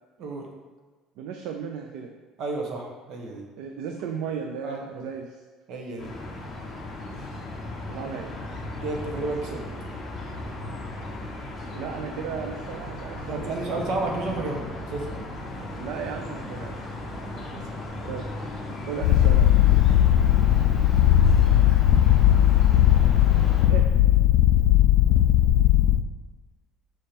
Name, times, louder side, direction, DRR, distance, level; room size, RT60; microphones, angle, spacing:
voice 1, 1.2-2.1 3.6-5.4 7.9-8.3 11.7-13.9 15.8-16.9 18.1-18.3 18.8-19.5 23.7-23.8, right 7 dB, 80° right, 3 dB, 0.6 m, -35 dB
voice 2, 2.4-3.5 4.6-5.0 5.7-6.1 8.8-9.6 13.2-15.2 17.5-17.6 20.2-20.4, right 2 dB, 55° right, 1 dB, 1.2 m, -32 dB
sound 1, 6.0-23.7, left 1 dB, 25° left, 1.4 m, -36 dB
Purr, 19.0-26.0, left 12 dB, 70° left, 0.3 m, -18 dB
5.5 x 4.4 x 5.2 m, 1.4 s
cardioid pair, 140°, 0 cm